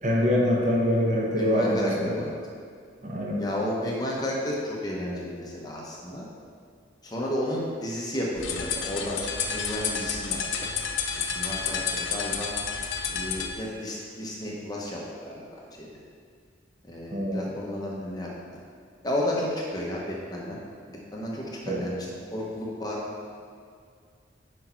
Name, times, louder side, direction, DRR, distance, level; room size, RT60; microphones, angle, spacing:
voice 1, 0.0-2.1 3.0-3.5 17.1-17.5 21.7-21.8, equal, 40° right, -2 dB, 1.1 m, -24 dB
voice 2, 1.4-2.3 3.4-6.2 7.0-10.7 11.3-12.5 13.1-15.9 16.8-18.3 19.0-20.6 20.9-23.0, left 1 dB, 20° left, -4 dB, 1.0 m, -32 dB
sound 1, 8.4-13.5, left 6 dB, 85° left, 0.6 m, -30 dB
6.4 x 5.7 x 4.4 m, 2.2 s
head